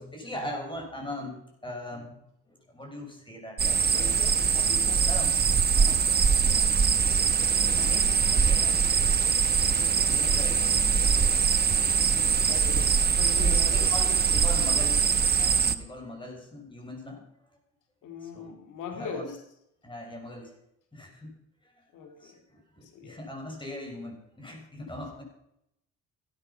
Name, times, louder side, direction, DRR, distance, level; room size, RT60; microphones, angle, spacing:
voice 1, 0.0-2.2 2.5-4.2 5.1-5.3 5.7-6.0 6.3-7.2 7.7-8.8 9.9-10.9 13.4-15.1 15.4-17.2 18.2-18.6 19.0-19.3 19.8-20.5 20.9-21.3 21.6-21.7 22.2-25.2, left 1 dB, 15° left, 2 dB, 5.8 m, -40 dB
sound 1, 3.6-15.8, right 6 dB, 35° right, 1.0 m, -23 dB
voice 2, 3.8-5.1 10.1-10.6 11.9-14.2 18.0-19.4 21.9-22.4 22.8-23.2, left 5 dB, 85° left, 4 dB, 2.4 m, -41 dB
16.0 x 12.0 x 5.7 m, 0.80 s
cardioid pair, 90°, 30 cm